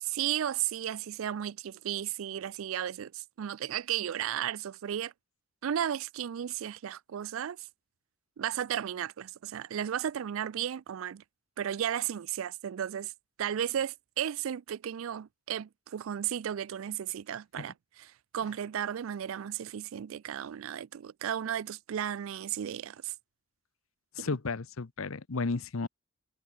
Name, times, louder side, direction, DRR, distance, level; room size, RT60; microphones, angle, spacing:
voice 1, 0.0-5.1 5.6-7.7 8.4-11.2 11.6-13.1 13.4-23.1 24.2-24.3, right 10 dB, 75° right, 0.4 m, -34 dB
voice 2, 24.2-25.9, left 4 dB, 75° left, 0.8 m, -33 dB
head